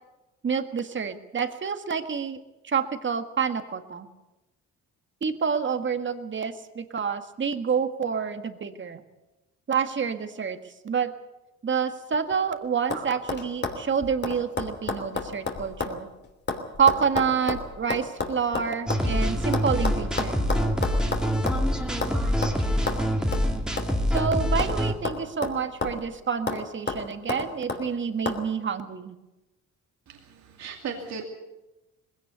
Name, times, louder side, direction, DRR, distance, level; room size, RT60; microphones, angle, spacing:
voice 1, 0.4-2.4 2.6-4.1 5.2-9.0 9.7-10.6 10.8-11.1 11.6-16.1 16.8-20.4 24.1-29.2, right 6 dB, 40° right, 8 dB, 1.8 m, -28 dB
sound 1, 12.1-12.5 12.9-13.0 13.3-19.1 19.5-21.7 22.0-22.2 22.4-22.6 22.9-23.0 23.3-23.5 23.8-24.8 25.1-26.1 26.5-26.6 26.9-27.8 28.3-28.4, left 4 dB, 35° left, 3.1 m, -31 dB
sound 2, 18.9-24.9, equal, ahead, 2.3 m, -25 dB
voice 2, 30.1-31.2, right 6 dB, 65° right, 2 dB, 2.5 m, -37 dB
20.0 x 17.0 x 8.2 m, 1.0 s
cardioid pair, 90°, 30 cm